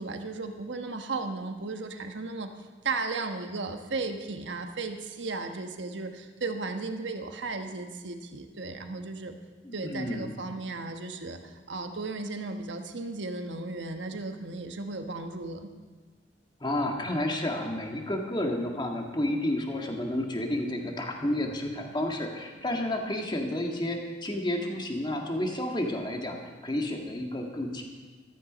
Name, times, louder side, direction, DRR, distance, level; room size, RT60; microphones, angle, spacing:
voice 1, 0.0-2.5 2.8-9.3 9.7-15.7, right 3 dB, 80° right, 6 dB, 1.2 m, -35 dB
voice 2, 9.6-10.4 16.6-26.4 26.6-27.8, left 1 dB, 25° left, 2 dB, 1.8 m, -31 dB
14.5 x 14.0 x 5.2 m, 1.4 s
head